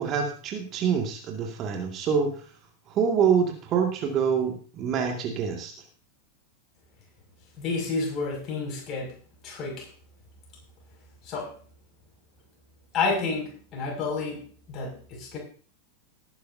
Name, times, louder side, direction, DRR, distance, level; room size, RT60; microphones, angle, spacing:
voice 1, 0.0-2.4 2.9-5.7, right 7 dB, 35° right, 2 dB, 2.2 m, -26 dB
voice 2, 7.6-9.1 9.4-9.9 11.3-11.5 12.9-15.4, left 4 dB, 35° left, 0 dB, 6.3 m, -30 dB
19.0 x 10.5 x 2.8 m, 0.42 s
figure-of-eight pair, 90°, 0 cm